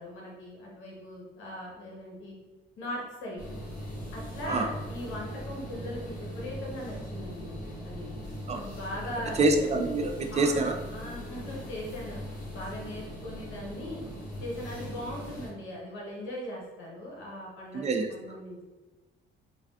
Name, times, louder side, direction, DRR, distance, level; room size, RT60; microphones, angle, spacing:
voice 1, 0.0-2.4 2.8-3.5 4.1-7.6 7.8-8.1 8.5-9.5 10.3-10.6 10.9-12.2 12.5-14.0 14.4-18.6, left 1 dB, 85° left, -3 dB, 1.0 m, -39 dB
sound 1, 3.4-15.5, equal, 45° left, 1.3 m, -40 dB
voice 2, 9.4-10.7 17.7-18.1, right 2 dB, 35° right, 4 dB, 0.4 m, -26 dB
3.2 x 2.3 x 2.5 m, 1.2 s
cardioid pair, 90°, 20 cm